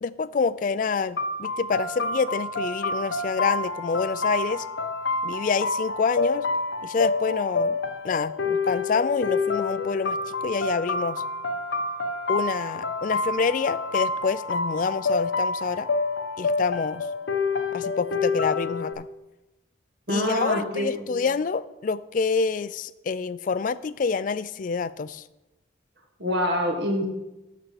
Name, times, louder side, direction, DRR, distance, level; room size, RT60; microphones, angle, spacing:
voice 1, 0.0-4.7 5.2-6.5 6.8-7.8 8.0-11.2 12.3-15.9 16.4-17.1 17.7-19.1 20.1-25.2, left 5 dB, 40° left, 16 dB, 0.3 m, -27 dB
sound 1, 1.2-18.9, left 3 dB, 65° left, 0.7 m, -28 dB
voice 2, 20.1-21.1 26.2-27.0, equal, 60° right, 2 dB, 1.7 m, -25 dB
11.5 x 4.2 x 6.8 m, 0.99 s
head